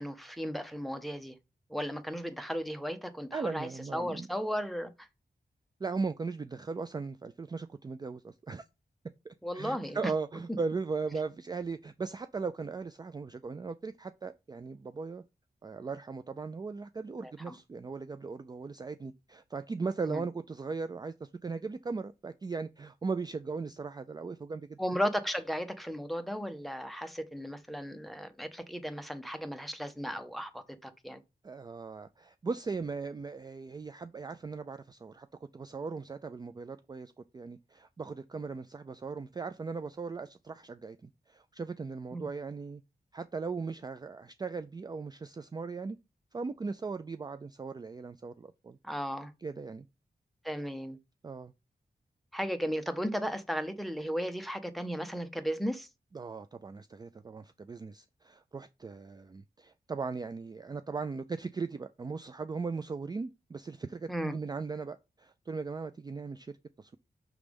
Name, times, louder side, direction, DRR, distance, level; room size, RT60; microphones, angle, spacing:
voice 1, 0.0-1.4 1.7-4.9 9.4-10.1 17.2-17.6 20.0-20.2 24.8-31.2 42.1-42.3 48.8-49.3 50.4-51.0 52.3-55.9 64.1-64.4, equal, ahead, 0.7 m, -35 dB
voice 2, 3.3-4.3 5.8-8.6 9.2-15.2 15.6-24.8 31.4-35.3 35.5-42.8 43.1-46.0 46.3-48.8 49.4-49.9 51.2-51.5 56.1-67.0, right 4 dB, 25° right, 0.3 m, -38 dB
6.1 x 3.3 x 5.1 m
wide cardioid pair, 145°, 16 cm